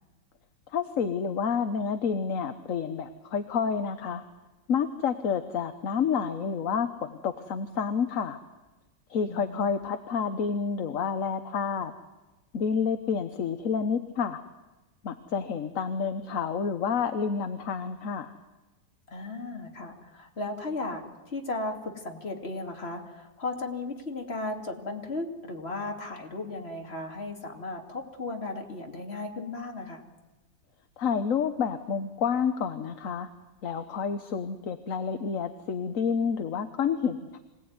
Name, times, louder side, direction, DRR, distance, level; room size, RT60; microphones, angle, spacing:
voice 1, 0.7-4.2 4.7-8.4 9.1-11.9 12.5-14.4 15.0-18.3 31.0-33.3 33.6-37.4, left 6 dB, 50° left, 9 dB, 1.3 m, -29 dB
voice 2, 9.3-9.9 19.1-30.0, left 2 dB, 35° left, 3 dB, 2.9 m, -36 dB
25.5 x 18.0 x 9.6 m, 1.1 s
omnidirectional pair, 2.0 m